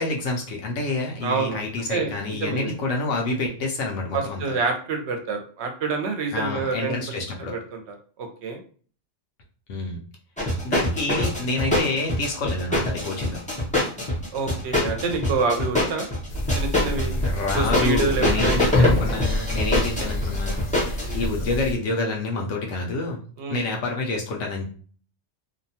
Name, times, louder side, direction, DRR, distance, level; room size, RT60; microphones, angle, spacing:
voice 1, 0.0-4.4 6.3-7.5 9.7-10.0 10.6-13.4 16.9-23.2 23.5-24.6, left 2 dB, 80° left, 0 dB, 0.9 m, -28 dB
voice 2, 1.2-1.6 1.9-2.1 2.4-2.8 4.1-7.0 7.4-8.6 14.3-16.1 16.5-17.1 17.5-18.5 18.8-19.1 21.0-21.3 23.4-23.6, right 4 dB, 65° right, 4 dB, 0.9 m, -27 dB
sound 1, 10.4-21.2, left 1 dB, 10° left, 0.5 m, -24 dB
sound 2, 16.3-21.7, equal, 60° left, 0.6 m, -29 dB
2.7 x 2.2 x 2.7 m, 0.42 s
omnidirectional pair, 1.3 m